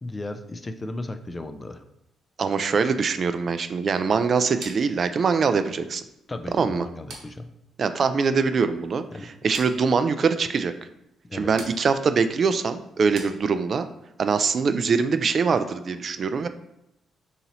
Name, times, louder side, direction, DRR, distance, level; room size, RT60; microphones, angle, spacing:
voice 1, 0.0-1.8 6.3-7.5 9.1-9.3 11.3-11.5, left 2 dB, 25° left, 9 dB, 0.4 m, -35 dB
voice 2, 2.4-6.0 6.5-6.8 7.8-10.7 11.3-13.9 14.2-16.5, right 5 dB, 50° right, 10 dB, 0.3 m, -23 dB
sound 1, 4.6-13.9, right 3 dB, 80° right, 1.1 m, -47 dB
4.0 x 2.9 x 3.9 m, 0.83 s
cardioid pair, 90°, 0 cm